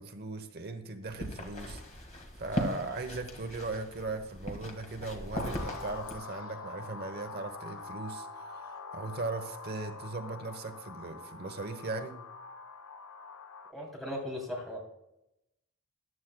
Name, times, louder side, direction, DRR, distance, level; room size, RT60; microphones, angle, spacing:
voice 1, 0.0-1.8 2.4-12.2, right 3 dB, 45° right, 7 dB, 0.9 m, -38 dB
sound 1, 1.0-6.2, equal, 35° left, 1.8 m, -39 dB
sound 2, 5.3-13.7, left 4 dB, 65° left, 0.6 m, -45 dB
voice 2, 13.7-14.8, left 1 dB, ahead, -3 dB, 3.0 m, -37 dB
14.0 x 11.0 x 2.2 m, 0.88 s
head